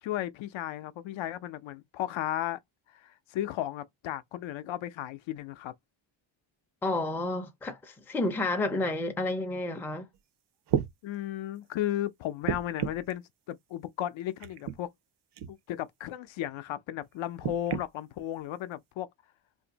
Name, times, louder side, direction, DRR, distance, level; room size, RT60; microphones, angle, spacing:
voice 1, 0.0-2.6 2.9-5.7 11.0-14.9 15.5-19.1, left 12 dB, 70° left, 0.5 m, -35 dB
voice 2, 6.8-10.1, left 2 dB, 5° left, 0.4 m, -30 dB
sound 1, 10.1-10.2 10.7-10.9 12.4-13.1 14.4-14.8 15.4-15.5 17.4-17.9 18.8-18.9, right 9 dB, 60° right, 0.5 m, -31 dB
2.6 x 2.5 x 3.8 m
cardioid pair, 170°, 49 cm